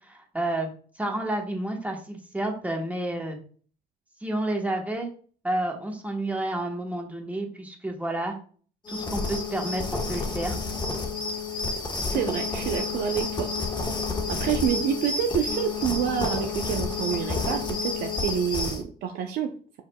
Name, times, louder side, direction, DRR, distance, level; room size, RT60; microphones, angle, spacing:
voice 1, 0.1-0.7 1.0-3.4 4.2-5.1 5.4-8.3 8.9-10.6, right 1 dB, 10° right, 2 dB, 1.2 m, -30 dB
sound 1, 8.9-18.8, left 3 dB, 25° left, 1.1 m, -30 dB
voice 2, 12.1-13.5 14.3-19.5, right 8 dB, 75° right, 4 dB, 0.6 m, -28 dB
5.0 x 4.8 x 2.2 m, 0.43 s
cardioid pair, 110°, 17 cm